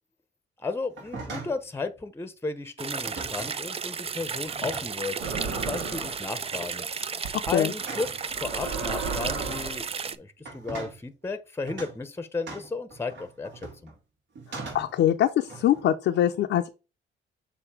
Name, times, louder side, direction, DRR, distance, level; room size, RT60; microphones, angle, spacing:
voice 1, 0.6-5.2 5.5-6.9 7.5-13.9, left 3 dB, 10° left, 0.8 m, -34 dB
sound 1, 0.9-1.6 3.0-3.6 4.3-5.1 5.5-5.8 6.3-6.7 7.8-8.2 9.0-9.7 10.4-11.0 11.7-12.0 12.5-13.9 14.4-15.0 15.5-15.9, right 3 dB, 65° right, 2.3 m, -41 dB
sound 2, 2.8-10.2, right 6 dB, 30° right, 0.4 m, -34 dB
sound 3, 5.2-6.2 7.2-7.5 8.3-9.9, right 4 dB, 85° right, 1.4 m, -33 dB
voice 2, 14.7-16.7, left 11 dB, 75° left, 0.6 m, -23 dB
7.0 x 2.7 x 4.9 m
cardioid pair, 90°, 20 cm